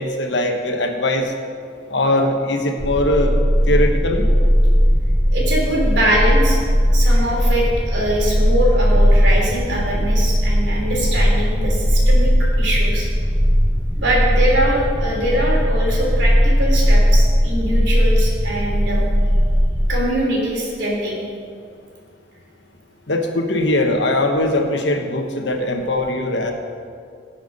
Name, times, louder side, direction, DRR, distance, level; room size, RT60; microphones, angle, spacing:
voice 1, 0.0-1.3 1.9-3.3 3.7-4.2 23.1-26.5, left 1 dB, 75° left, 4 dB, 1.2 m, -20 dB
sound 1, 2.8-19.9, equal, 5° right, 0.6 m, -17 dB
voice 2, 5.3-6.6 6.9-12.3 12.6-13.1 14.0-19.1 19.9-21.1, right 1 dB, 80° right, -2 dB, 3.1 m, -22 dB
17.0 x 5.9 x 5.4 m, 2.2 s
head